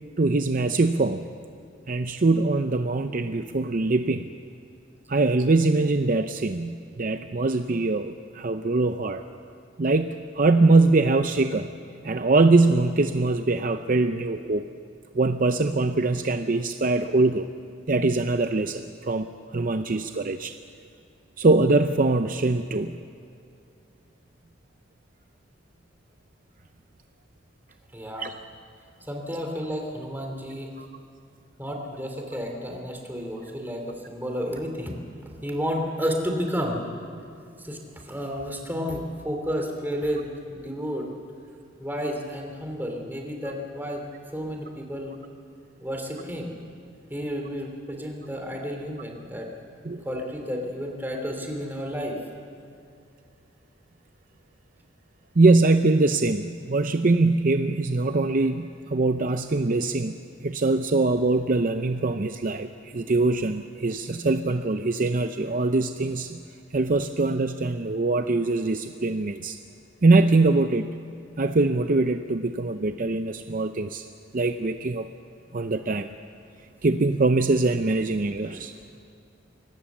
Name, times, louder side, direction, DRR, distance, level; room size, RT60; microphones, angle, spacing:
voice 1, 0.2-1.3 1.9-4.3 5.1-9.2 9.8-11.7 12.0-14.7 15.1-17.5 17.9-19.3 19.5-20.5 21.4-23.0 28.2-28.3 30.8-30.9 49.8-50.0 55.4-60.1 60.4-66.4 66.7-69.6 70.0-70.9 71.4-74.0 74.3-75.1 75.5-76.1 76.8-78.7, right 3 dB, 45° right, 8 dB, 0.6 m, -23 dB
voice 2, 27.9-28.3 29.1-30.7 31.6-35.0 35.4-36.8 37.6-41.1 41.8-45.1 45.8-46.5 47.1-49.5 50.0-52.2, equal, 10° right, 2 dB, 2.9 m, -31 dB
24.5 x 18.5 x 7.3 m, 2.5 s
head